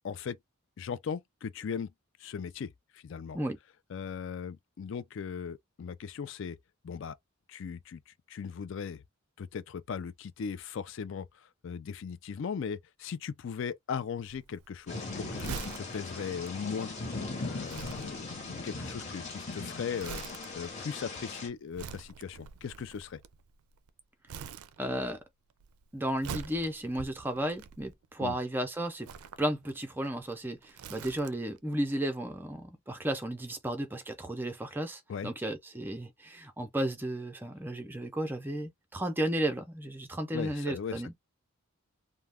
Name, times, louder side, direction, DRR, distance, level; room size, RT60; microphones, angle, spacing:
voice 1, 0.0-0.4 0.8-1.9 2.2-3.4 3.9-6.6 6.8-7.2 7.5-9.0 9.4-23.2 28.2-28.4 35.1-35.3 40.3-41.1, left 6 dB, 55° left, 0.3 m, -38 dB
Crumpling crinkling, 14.2-23.9 24.3-25.2 25.5-28.2 28.9-31.6 31.9-32.0, right 7 dB, 85° right, 0.4 m, -45 dB
Thunder / Rain, 14.9-21.5, left 3 dB, 30° left, 0.9 m, -39 dB
voice 2, 24.8-25.2 25.9-29.1 29.4-41.1, right 1 dB, 10° right, 0.5 m, -34 dB
2.3 x 2.1 x 3.3 m
head